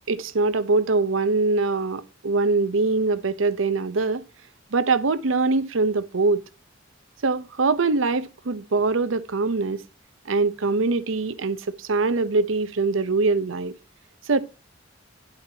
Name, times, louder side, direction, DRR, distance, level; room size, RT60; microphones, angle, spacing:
voice 1, 0.1-4.2 4.7-6.4 7.2-9.8 10.3-13.7 14.3-14.4, right 3 dB, 80° right, 0.8 m, -23 dB
9.8 x 8.0 x 2.8 m
head